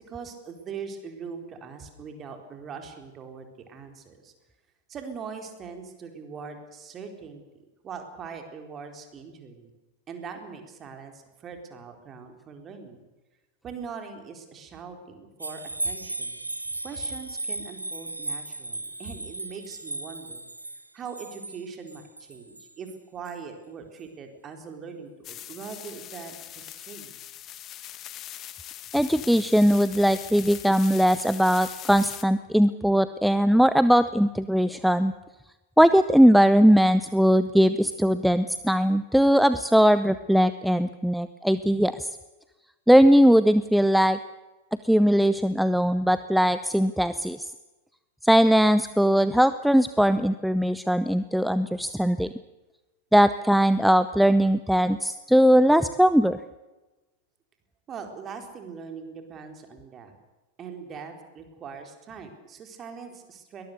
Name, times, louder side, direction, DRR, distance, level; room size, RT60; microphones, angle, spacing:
voice 1, 0.1-4.3 4.9-7.4 7.8-9.7 10.1-13.0 13.6-16.4 16.8-20.5 20.9-27.2 57.9-60.1 60.6-63.6, right 5 dB, 25° right, 5 dB, 4.2 m, -41 dB
sound 1, 15.4-22.7 23.3-23.4, right 2 dB, 80° right, 1.1 m, -36 dB
sound 2, 25.2-32.2, left 12 dB, 30° left, 1.4 m, -41 dB
voice 2, 28.9-35.1 35.8-42.1 42.9-44.2 44.8-47.5 48.2-52.3 53.1-56.4, equal, ahead, 13 dB, 0.7 m, -20 dB
22.5 x 20.5 x 6.8 m, 1.1 s
figure-of-eight pair, 90°, 0 cm